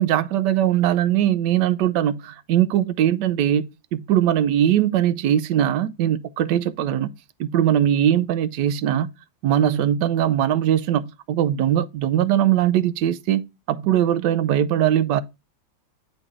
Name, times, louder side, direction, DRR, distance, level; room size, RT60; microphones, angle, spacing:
voice 1, 0.0-7.1 7.4-9.1 9.4-15.2, right 11 dB, 75° right, 1.2 m, -21 dB
9.6 x 3.9 x 3.6 m
omnidirectional pair, 2.0 m